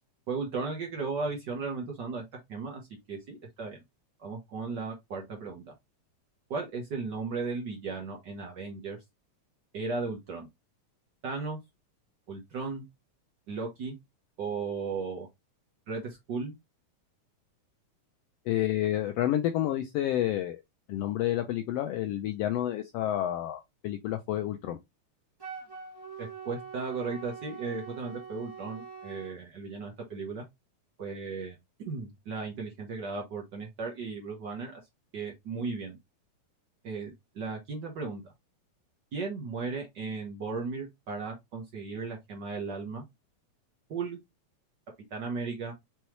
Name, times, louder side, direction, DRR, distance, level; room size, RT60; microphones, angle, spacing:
voice 1, 0.3-2.2 2.5-2.8 3.1-3.8 4.2-5.7 6.5-9.0 9.7-10.5 11.2-11.6 12.3-12.8 13.5-14.0 14.4-15.3 15.9-16.5 26.2-30.4 31.0-31.6 31.9-34.8 35.1-36.0 36.8-38.3 39.1-43.0 43.9-44.2 45.1-45.7, right 4 dB, 75° right, 1.0 m, -36 dB
voice 2, 18.5-20.6 20.9-24.8, left 12 dB, 90° left, 1.4 m, -29 dB
Wind instrument woodwind instrument, 25.4-29.3, right 6 dB, 15° right, 0.7 m, -44 dB
5.4 x 3.1 x 3.0 m
omnidirectional pair, 3.4 m